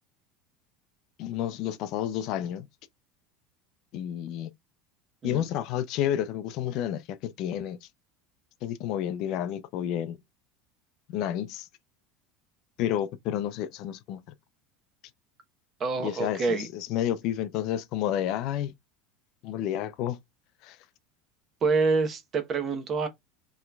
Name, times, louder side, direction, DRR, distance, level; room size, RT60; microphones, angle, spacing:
voice 1, 1.2-2.7 3.9-4.5 5.2-7.8 8.6-10.2 11.1-11.7 12.8-14.2 16.0-18.7 19.4-20.2 20.6-20.8, left 11 dB, 50° left, 0.4 m, -30 dB
voice 2, 15.8-16.7 21.6-23.1, right 4 dB, 25° right, 0.9 m, -27 dB
5.5 x 3.0 x 2.3 m
supercardioid pair, 155°, 0 cm